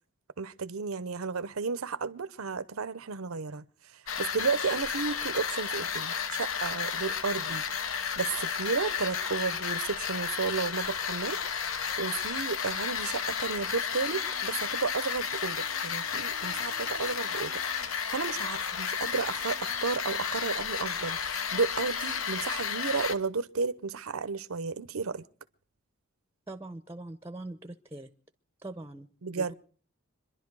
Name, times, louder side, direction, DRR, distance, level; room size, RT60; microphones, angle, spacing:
voice 1, 0.4-7.6 8.2-11.4 11.7-25.2 29.2-29.5, right 4 dB, 85° right, 0.7 m, -33 dB
sound 1, 4.1-23.2, left 7 dB, 70° left, 1.0 m, -32 dB
voice 2, 26.5-28.1 28.6-29.5, right 2 dB, 10° right, 0.7 m, -42 dB
26.0 x 11.0 x 4.7 m
head